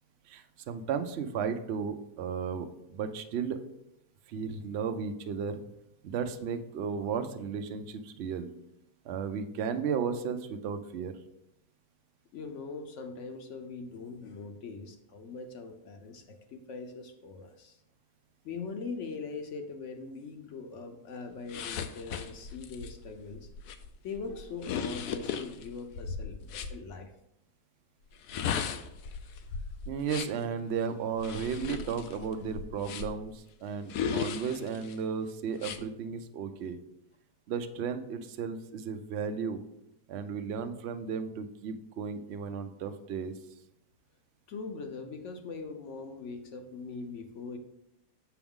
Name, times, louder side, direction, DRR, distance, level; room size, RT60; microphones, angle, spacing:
voice 1, 0.3-3.6 4.3-5.6 6.0-8.5 9.0-11.2 29.9-36.8 37.5-39.6 40.1-43.4, right 6 dB, 65° right, 7 dB, 0.6 m, -34 dB
voice 2, 12.3-17.8 18.4-23.5 24.0-27.1 44.5-47.6, left 4 dB, 60° left, 6 dB, 0.9 m, -41 dB
sound 1, 21.5-26.8 28.1-30.4 31.2-33.3 33.9-34.9 35.6-35.8, left 6 dB, 80° left, 1.1 m, -36 dB
7.0 x 5.9 x 3.6 m, 0.81 s
omnidirectional pair, 1.7 m